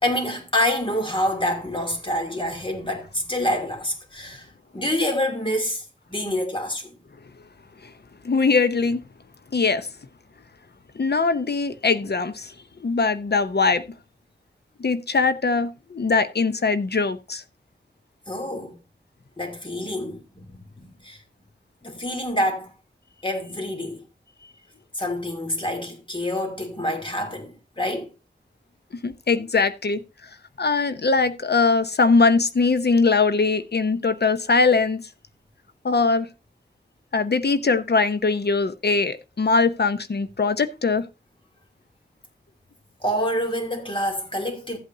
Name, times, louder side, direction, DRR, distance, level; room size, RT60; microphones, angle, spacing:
voice 1, 0.0-4.5 4.7-7.0 18.3-18.8 19.4-21.2 21.8-22.7 23.2-24.0 24.9-28.1 43.0-44.8, left 1 dB, 25° left, 2.8 m, -27 dB
voice 2, 8.2-9.0 9.5-9.9 11.0-12.5 12.8-13.8 14.8-17.4 29.0-30.0 30.6-35.0 35.8-36.3 37.1-41.1, left 4 dB, 65° left, 0.7 m, -21 dB
14.5 x 8.4 x 2.7 m
wide cardioid pair, 65°, 18 cm